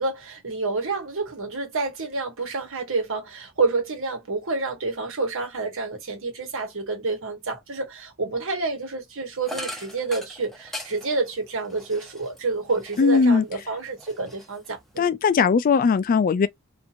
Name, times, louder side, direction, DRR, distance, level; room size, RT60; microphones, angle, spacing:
voice 1, 0.0-15.1, right 3 dB, 65° right, 1.2 m, -28 dB
sound 1, 9.4-13.4 13.8-15.0, left 1 dB, ahead, 0.7 m, -40 dB
voice 2, 13.0-13.4 15.0-16.5, left 5 dB, 40° left, 0.3 m, -19 dB
2.7 x 2.5 x 2.6 m
head